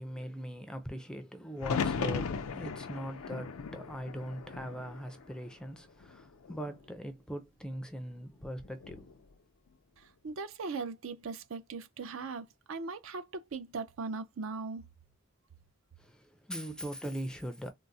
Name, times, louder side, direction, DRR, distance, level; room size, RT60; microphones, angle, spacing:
voice 1, 0.0-9.2 16.0-17.7, equal, 5° left, 0.4 m, -41 dB
sound 1, 1.6-5.6 6.0-6.8 8.6-9.1, left 5 dB, 90° left, 0.5 m, -37 dB
voice 2, 10.2-14.8, right 4 dB, 70° right, 0.5 m, -39 dB
3.7 x 2.0 x 2.6 m
head